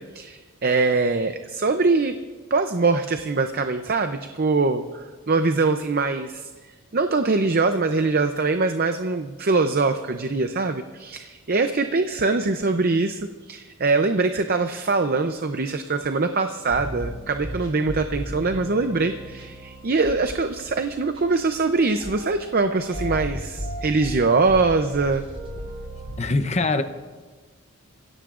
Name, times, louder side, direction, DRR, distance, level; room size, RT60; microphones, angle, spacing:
voice 1, 0.0-2.1 2.5-25.2, right 3 dB, 45° right, 7 dB, 0.6 m, -23 dB
sound 1, 16.7-26.2, equal, 25° right, 6.2 m, -36 dB
voice 2, 26.2-26.8, left 3 dB, 30° left, 9 dB, 0.7 m, -22 dB
26.5 x 16.5 x 2.5 m, 1.3 s
head